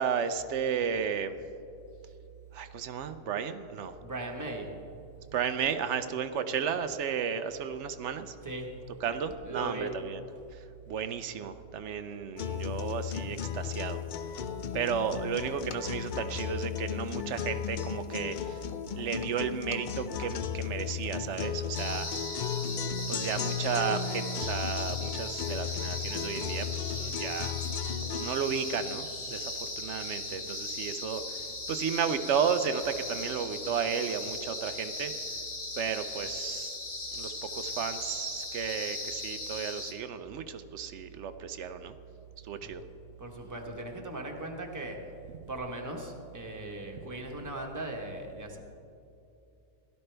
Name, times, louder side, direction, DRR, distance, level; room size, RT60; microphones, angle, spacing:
voice 1, 0.0-1.4 2.5-3.9 5.3-8.3 9.0-10.2 10.5-10.6 10.9-14.0 14.7-18.6 18.9-22.1 23.1-27.6 28.1-35.1 35.8-36.8 37.1-41.9 42.5-42.8, right 7 dB, 70° right, 11 dB, 0.9 m, -33 dB
voice 2, 4.0-4.8 8.4-8.7 9.4-10.0 42.6-42.7 43.2-45.1 45.5-48.6, right 2 dB, 15° right, 1 dB, 1.2 m, -38 dB
sound 1, 12.4-28.4, left 7 dB, 60° left, 0.5 m, -35 dB
sound 2, 21.7-39.9, left 2 dB, 80° left, 2.1 m, -38 dB
17.0 x 12.0 x 3.4 m, 2.7 s
omnidirectional pair, 1.3 m